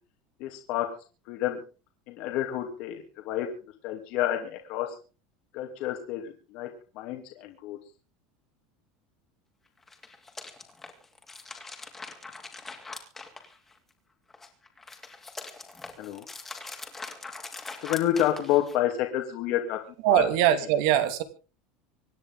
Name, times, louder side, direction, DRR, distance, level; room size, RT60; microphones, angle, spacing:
voice 1, 0.4-0.9 1.3-1.6 2.1-3.5 3.8-5.0 5.5-6.7 6.9-7.8 16.0-16.2 17.8-19.8 20.1-20.3, left 12 dB, 55° left, 3 dB, 2.6 m, -29 dB
sound 1, 9.8-13.9 14.3-18.9, left 3 dB, 10° left, 2.7 m, -42 dB
voice 2, 20.0-21.2, right 11 dB, 65° right, 10 dB, 2.4 m, -22 dB
26.0 x 10.0 x 3.9 m, 0.36 s
supercardioid pair, 150°, 2 cm